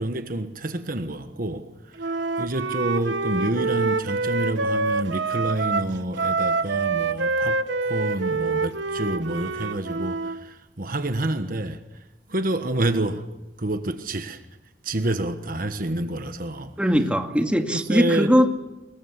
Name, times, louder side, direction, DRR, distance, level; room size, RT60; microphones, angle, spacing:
voice 1, 0.0-1.7 2.4-7.6 7.9-10.2 10.8-11.8 12.3-13.2 13.6-14.4 14.9-16.7 17.9-18.3, right 1 dB, 50° right, 1.3 m, -27 dB
Wind instrument woodwind instrument, 2.0-10.4, right 4 dB, 90° right, 1.1 m, -26 dB
voice 2, 16.8-18.5, equal, 5° right, 2.1 m, -20 dB
25.5 x 22.0 x 8.2 m
head